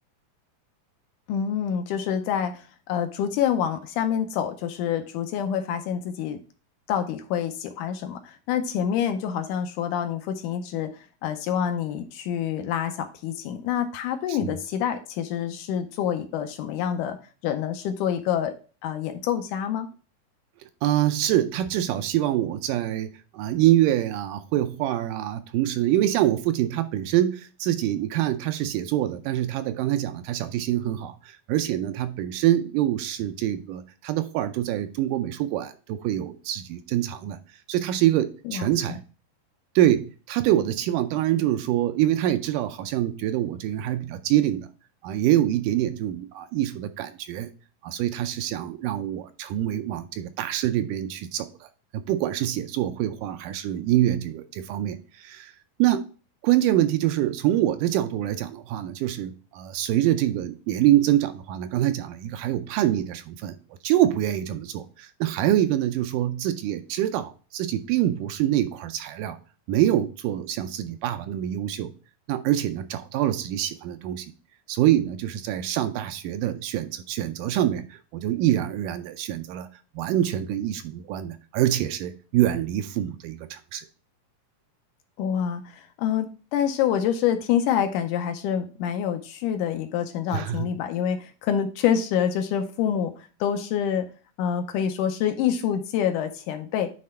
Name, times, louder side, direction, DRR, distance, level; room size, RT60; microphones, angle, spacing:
voice 1, 1.3-6.4 6.9-10.9 11.2-17.2 17.4-18.5 18.8-19.9 38.5-39.0 85.2-94.1 94.4-96.9, left 9 dB, 80° left, 7 dB, 2.0 m, -27 dB
voice 2, 20.8-37.4 37.7-39.0 39.8-44.7 45.0-47.5 47.8-51.7 51.9-55.5 55.8-56.0 56.4-63.6 63.8-69.4 69.7-71.9 72.3-74.3 74.7-79.7 80.0-83.9 90.3-90.7, right 13 dB, 80° right, 9 dB, 2.0 m, -25 dB
9.5 x 3.3 x 4.3 m, 0.36 s
omnidirectional pair, 3.9 m